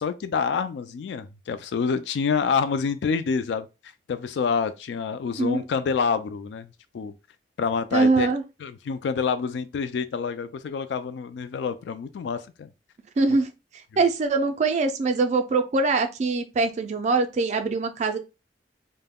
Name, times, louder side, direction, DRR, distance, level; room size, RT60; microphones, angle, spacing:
voice 1, 0.0-3.7 4.1-7.1 7.6-8.3 8.6-12.7 13.3-13.4 13.9-14.0, left 5 dB, 75° left, 0.3 m, -27 dB
voice 2, 7.9-8.4 13.2-13.5 14.0-18.2, right 3 dB, 40° right, 0.3 m, -23 dB
2.2 x 2.1 x 3.4 m
head